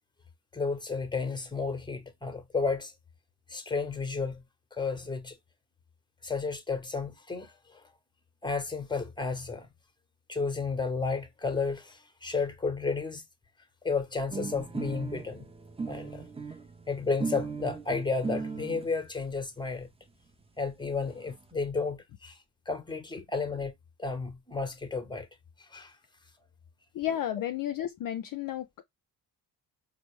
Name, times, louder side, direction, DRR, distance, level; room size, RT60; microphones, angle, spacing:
voice 1, 0.5-2.9 3.5-4.4 4.7-5.3 6.2-7.5 8.4-9.7 10.3-13.2 13.8-15.5 15.9-16.3 16.9-19.9 20.6-22.3 22.7-23.7 24.0-25.3 25.7-25.9, left 4 dB, 10° left, 0.9 m, -32 dB
sound 1, 14.3-18.9 19.7-19.8 20.1-20.2 20.4-20.5 20.7-21.4, right 4 dB, 15° right, 0.5 m, -37 dB
voice 2, 26.9-28.8, left 11 dB, 50° left, 0.5 m, -32 dB
4.1 x 2.0 x 3.0 m
supercardioid pair, 50°, 45 cm